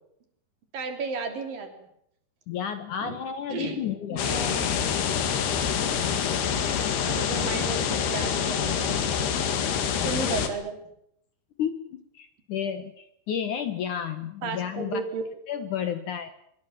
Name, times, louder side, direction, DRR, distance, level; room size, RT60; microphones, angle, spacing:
voice 1, 0.7-1.7 3.0-3.2 3.5-3.8 4.1-4.7 7.0-9.0 10.0-10.8 14.4-15.2, right 4 dB, 60° right, 6 dB, 5.0 m, -33 dB
voice 2, 2.5-4.4 11.6-15.0 15.5-16.3, left 8 dB, 65° left, 10 dB, 2.3 m, -32 dB
sound 1, 4.2-10.5, left 7 dB, 85° left, 4.3 m, -26 dB
25.0 x 22.5 x 7.4 m, 0.74 s
omnidirectional pair, 4.6 m